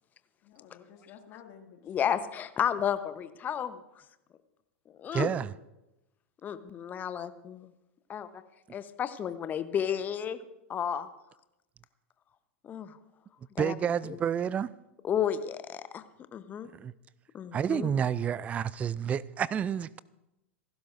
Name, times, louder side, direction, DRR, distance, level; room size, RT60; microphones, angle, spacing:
voice 1, 0.4-1.9, left 8 dB, 40° left, 2.2 m, -52 dB
voice 2, 1.9-3.8 5.0-5.3 6.4-7.7 8.1-8.4 8.7-10.4 10.7-11.1 12.6-13.0 13.6-13.7 14.1-14.2 15.0-16.0 16.3-16.7 17.3-17.9, left 9 dB, 25° left, 0.9 m, -32 dB
voice 3, 5.1-5.5 13.6-14.7 16.7-16.9 17.5-20.0, right 8 dB, 20° right, 0.4 m, -29 dB
27.0 x 12.0 x 2.6 m
figure-of-eight pair, 95°, 7 cm